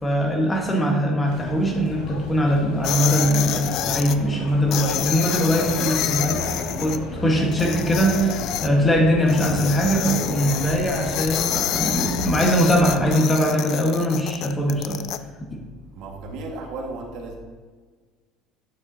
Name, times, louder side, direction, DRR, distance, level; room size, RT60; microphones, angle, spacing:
voice 1, 0.0-6.5 6.8-15.0, equal, 15° left, 1 dB, 1.3 m, -21 dB
sound 1, 1.3-13.2, left 2 dB, 70° left, 1.8 m, -33 dB
sound 2, 2.8-4.2 4.7-7.0 7.5-8.7 9.3-15.2, left 11 dB, 55° left, 0.3 m, -28 dB
voice 2, 15.9-17.4, right 2 dB, 60° right, 1 dB, 1.6 m, -34 dB
9.7 x 6.5 x 2.7 m, 1.5 s
cardioid pair, 150°, 0 cm